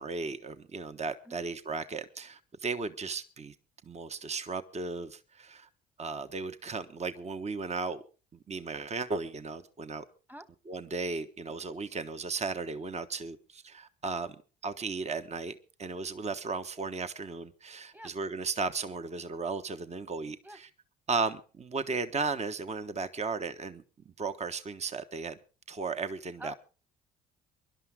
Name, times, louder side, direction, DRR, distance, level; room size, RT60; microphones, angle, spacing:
voice 1, 0.0-3.5 3.8-5.7 6.0-8.0 8.5-10.0 10.7-14.4 14.6-20.7 21.1-23.8 24.2-25.4 25.7-26.5, right 4 dB, 35° right, 1.3 m, -35 dB
voice 2, 1.2-1.4 10.3-10.5 17.9-18.1 20.4-20.6 26.4-26.5, right 1 dB, 10° right, 1.4 m, -45 dB
24.0 x 11.5 x 3.7 m
hypercardioid pair, 55°, 20 cm